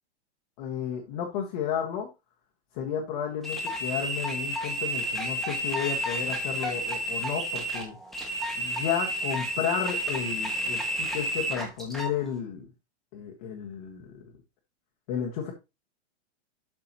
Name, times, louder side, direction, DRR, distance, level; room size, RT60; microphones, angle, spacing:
voice 1, 0.6-2.1 2.7-8.0 8.6-12.7 13.1-14.3 15.1-15.5, left 8 dB, 35° left, 0 dB, 1.4 m, -32 dB
sound 1, 3.4-12.1, right 1 dB, ahead, 1.2 m, -31 dB
12.0 x 4.7 x 2.9 m, 0.26 s
hypercardioid pair, 170°, 35 cm